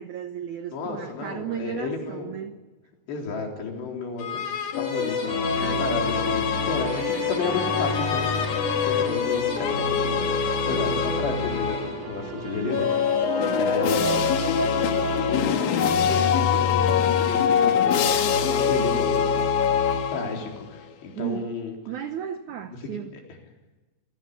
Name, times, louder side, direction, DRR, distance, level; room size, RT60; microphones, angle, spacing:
voice 1, 0.0-2.6 5.6-6.2 10.6-11.3 13.4-13.7 21.2-21.5 21.9-23.1, right 9 dB, 85° right, 1.7 m, -35 dB
voice 2, 0.7-2.4 3.1-4.5 4.8-13.2 13.6-14.2 15.3-19.4 20.1-21.7, left 4 dB, 80° left, 6.0 m, -32 dB
sound 1, 4.2-12.1 12.7-20.6, left 6 dB, 60° left, 2.4 m, -24 dB
sound 2, 4.9-15.4, right 3 dB, 40° right, 3.9 m, -36 dB
26.5 x 18.0 x 8.3 m
omnidirectional pair, 4.9 m